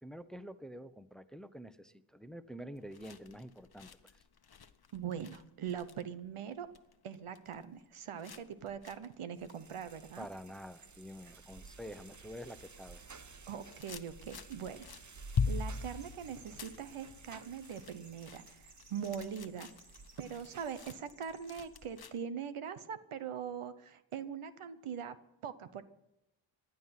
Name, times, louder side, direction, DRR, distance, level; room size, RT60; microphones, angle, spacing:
voice 1, 0.0-4.1 10.2-13.0, equal, ahead, 11 dB, 0.9 m, -48 dB
sound 1, 2.8-11.0 11.4-12.2 12.5-22.2, left 5 dB, 50° left, 1.1 m, -43 dB
voice 2, 4.9-6.7 7.0-10.3 13.5-14.8 15.4-18.6 18.9-19.7 20.2-25.2 25.4-25.8, right 8 dB, 90° right, 12 dB, 0.9 m, -42 dB
sound 2, 9.4-20.9, right 4 dB, 35° right, 1.0 m, -55 dB
Chirp tweet, 15.7-22.0, right 3 dB, 65° right, 3.1 m, -63 dB
18.5 x 11.0 x 5.8 m, 0.89 s
cardioid pair, 40°, 49 cm